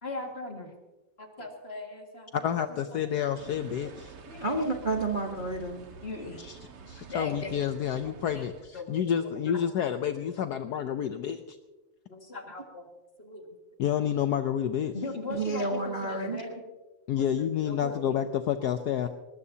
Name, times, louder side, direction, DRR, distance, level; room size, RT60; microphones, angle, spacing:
voice 1, 0.0-0.7 1.2-2.8 4.3-4.5 6.0-6.4 6.9-7.6 8.3-8.5 8.7-9.6 12.1-12.8 13.2-13.6 14.9-16.5 17.2-17.3 17.6-18.2 19.0-19.1, left 2 dB, 30° left, 2 dB, 2.1 m, -39 dB
voice 2, 2.4-4.1 6.4-6.5 6.9-11.6 13.8-14.9 17.1-19.1, left 9 dB, 75° left, 8 dB, 0.9 m, -29 dB
sound 1, 3.4-8.6, right 5 dB, 80° right, 2.4 m, -48 dB
voice 3, 4.4-5.8 15.3-16.4, right 2 dB, 30° right, 1 dB, 1.0 m, -30 dB
20.5 x 19.5 x 2.8 m, 1.1 s
omnidirectional pair, 2.4 m